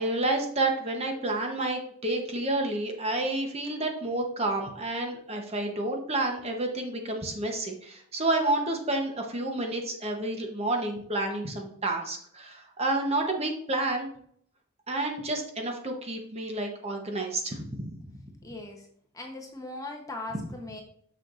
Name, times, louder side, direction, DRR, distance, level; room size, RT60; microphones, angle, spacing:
voice 1, 0.0-14.1 14.9-18.1, right 2 dB, 25° right, 3 dB, 0.8 m, -30 dB
voice 2, 18.4-18.9 19.1-20.8, left 2 dB, 15° left, 2 dB, 0.8 m, -39 dB
6.5 x 6.4 x 2.5 m, 0.65 s
head